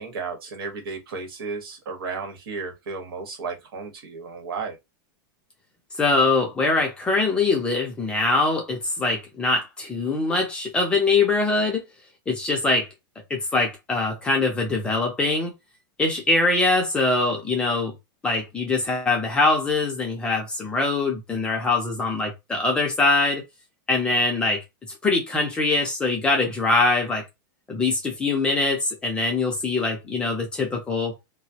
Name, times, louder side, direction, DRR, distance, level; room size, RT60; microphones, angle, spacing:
voice 1, 0.0-4.8, right 4 dB, 85° right, 1.0 m, -33 dB
voice 2, 6.0-11.8 12.3-12.9 13.3-15.5 16.0-17.9 18.2-23.4 23.9-24.6 25.0-27.2 27.7-31.1, left 3 dB, 10° left, 0.4 m, -23 dB
2.3 x 2.0 x 2.6 m
supercardioid pair, 180°, 12 cm